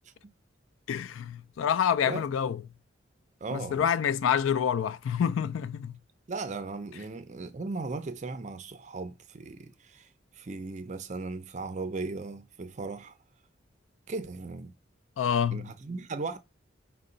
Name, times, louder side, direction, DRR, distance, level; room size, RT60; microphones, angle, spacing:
voice 1, 0.9-2.6 3.5-5.9 15.2-15.7, left 8 dB, 90° left, 0.4 m, -27 dB
voice 2, 3.4-3.9 6.3-10.1 10.3-13.1 14.1-14.7 15.5-16.4, right 3 dB, 35° right, 0.4 m, -37 dB
5.4 x 2.2 x 3.8 m
head